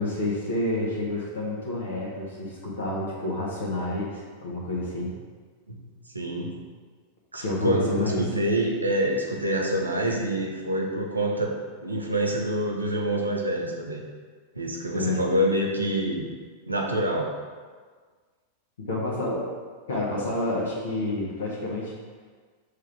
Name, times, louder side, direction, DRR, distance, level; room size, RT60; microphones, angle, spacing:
voice 1, 0.0-5.2 7.4-8.2 14.9-15.2 18.9-19.5 19.9-21.9, left 1 dB, 65° left, -5 dB, 1.5 m, -29 dB
voice 2, 6.1-6.5 7.3-11.5 11.8-14.0 14.5-16.3 16.7-17.3, right 1 dB, 80° right, 0 dB, 1.1 m, -26 dB
6.5 x 3.7 x 5.9 m, 1.5 s
figure-of-eight pair, 90°, 0 cm